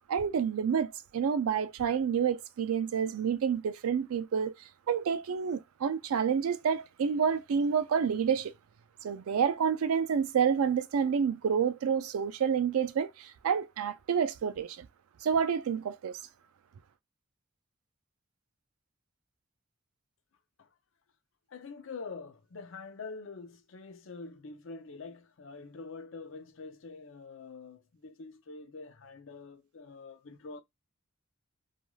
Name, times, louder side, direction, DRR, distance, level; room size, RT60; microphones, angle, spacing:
voice 1, 0.1-4.5 4.9-8.5 9.0-14.9 15.2-16.2, right 7 dB, 90° right, 0.4 m, -29 dB
voice 2, 21.5-30.6, left 4 dB, 65° left, 0.5 m, -45 dB
2.3 x 2.3 x 3.1 m
head